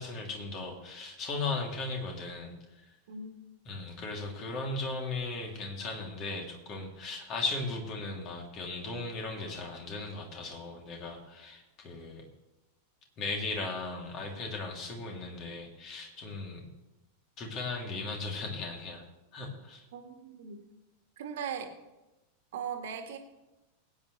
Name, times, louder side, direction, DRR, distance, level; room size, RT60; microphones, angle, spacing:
voice 1, 0.0-2.5 3.7-12.3 13.2-16.7 17.4-19.0 19.3-19.8, left 3 dB, 35° left, 1 dB, 3.0 m, -37 dB
voice 2, 19.9-20.6 21.2-21.7 22.5-23.2, right 7 dB, 55° right, 5 dB, 1.8 m, -38 dB
21.0 x 9.3 x 3.3 m, 1.0 s
figure-of-eight pair, 90°, 0 cm